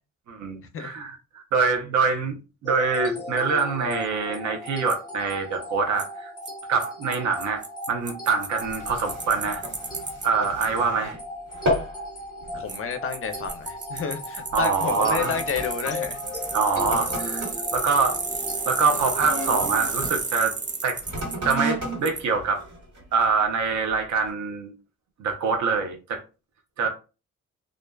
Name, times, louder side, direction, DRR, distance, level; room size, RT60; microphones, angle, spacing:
voice 1, 0.3-2.4 2.6-6.3 6.7-9.6 10.2-11.2 14.5-15.4 16.5-17.5 17.7-18.2 18.6-20.5 20.8-21.0 21.4-22.6 23.1-24.7 25.2-26.2 26.8-26.9, right 5 dB, 70° right, 0.7 m, -25 dB
sound 1, 2.7-19.6, left 2 dB, 15° left, 0.9 m, -37 dB
Bicycle, 4.9-5.0 6.0-6.1 6.5-6.6 6.8-6.9 7.1-7.2 7.4-10.3 10.6-10.7 12.7-12.8 13.1-21.5 22.1-22.2, right 4 dB, 25° right, 0.5 m, -32 dB
sound 2, 8.6-11.2 11.5-12.0 12.4-12.7 13.4-13.6 14.4-20.2 21.0-23.3 23.9-24.0, right 1 dB, 55° right, 1.5 m, -33 dB
voice 2, 10.7-11.1 12.6-16.2 26.8-26.9, left 6 dB, 45° left, 0.5 m, -31 dB
2.5 x 2.2 x 2.2 m
cardioid pair, 90°, 30 cm